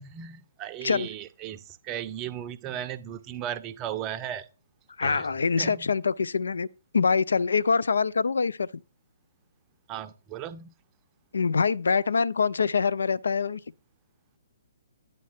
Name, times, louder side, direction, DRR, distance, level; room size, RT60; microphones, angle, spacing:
voice 1, 0.0-4.5 5.0-5.3 5.6-5.8 9.9-10.7, right 10 dB, 25° right, 0.5 m, -36 dB
voice 2, 5.0-6.7 6.9-8.7 11.3-13.6, left 5 dB, 75° left, 0.3 m, -24 dB
8.9 x 3.0 x 5.6 m
figure-of-eight pair, 130°, 0 cm